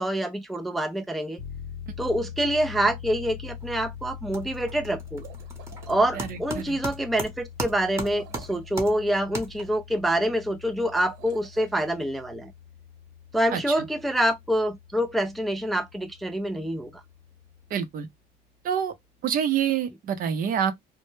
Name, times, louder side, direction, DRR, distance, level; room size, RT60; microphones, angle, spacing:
voice 1, 0.0-1.4 2.0-5.2 5.9-12.5 13.3-16.9, right 1 dB, ahead, 0.3 m, -26 dB
sound 1, 1.4-17.7, left 8 dB, 75° left, 0.7 m, -43 dB
sound 2, 3.5-3.8 4.1-10.0, right 2 dB, 15° right, 0.8 m, -38 dB
sound 3, 5.0-6.0 7.8-8.7 10.8-11.9, right 8 dB, 85° right, 1.1 m, -48 dB
voice 2, 6.2-6.8 13.5-13.9 17.7-18.1 18.6-18.9 19.2-20.7, right 8 dB, 55° right, 0.6 m, -27 dB
2.1 x 2.0 x 3.0 m
cardioid pair, 110°, 17 cm